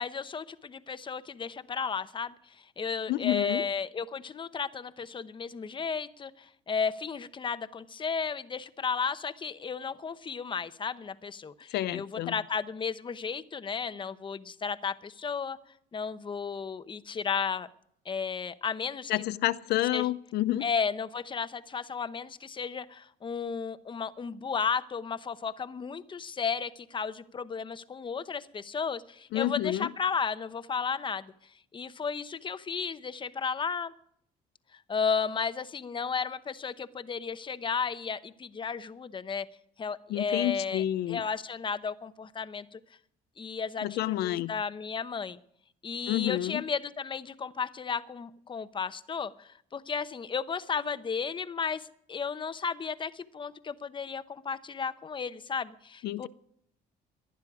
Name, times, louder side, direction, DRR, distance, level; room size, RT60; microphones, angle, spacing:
voice 1, 0.0-15.6 15.9-17.7 18.0-19.1 19.9-20.1 20.6-31.3 31.7-33.9 34.7-39.5 39.8-42.8 43.4-45.4 45.8-56.3, left 6 dB, 30° left, 0.9 m, -34 dB
voice 2, 3.1-3.7 11.7-12.3 19.1-20.6 29.3-29.9 40.1-41.2 43.8-44.5 46.1-46.6 56.0-56.3, left 14 dB, 75° left, 0.6 m, -29 dB
19.0 x 11.5 x 4.9 m
cardioid pair, 110°, 17 cm